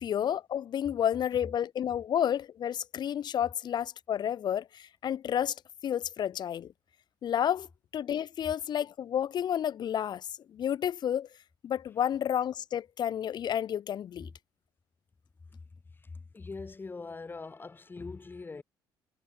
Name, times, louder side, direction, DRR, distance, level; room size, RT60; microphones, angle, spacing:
voice 1, 0.0-5.5 5.8-6.7 7.2-7.7 7.9-11.3 11.6-14.3, left 9 dB, 55° left, 1.4 m, -31 dB
voice 2, 16.3-18.6, left 4 dB, 25° left, 2.7 m, -42 dB
cardioid pair, 95°, 9 cm